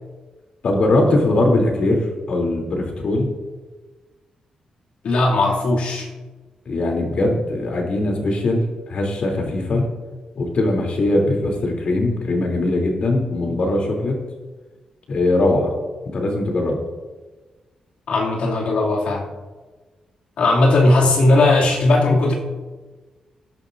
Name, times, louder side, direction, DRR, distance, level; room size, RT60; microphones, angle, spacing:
voice 1, 0.6-3.3 6.6-9.8 10.3-14.2 15.1-15.7 16.0-16.8, left 2 dB, 65° left, 1 dB, 3.1 m, -20 dB
voice 2, 5.0-6.1 18.1-19.3 20.4-22.3, left 2 dB, 85° left, -3 dB, 2.5 m, -17 dB
18.5 x 11.5 x 2.6 m, 1.3 s
cardioid pair, 95°, 2 cm